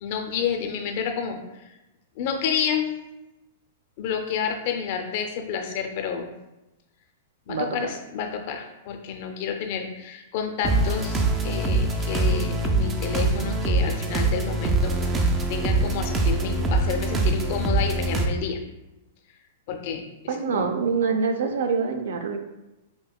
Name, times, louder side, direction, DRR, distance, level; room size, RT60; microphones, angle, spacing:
voice 1, 0.0-1.6 2.2-2.9 4.0-6.3 7.5-15.2 15.5-18.6 19.7-20.7, left 7 dB, 50° left, 4 dB, 0.5 m, -30 dB
voice 2, 7.5-7.9 20.3-22.4, right 5 dB, 80° right, 5 dB, 0.5 m, -25 dB
sound 1, 10.6-18.3, right 2 dB, 15° right, 0.4 m, -24 dB
5.3 x 2.8 x 2.3 m, 0.96 s
hypercardioid pair, 150°, 0 cm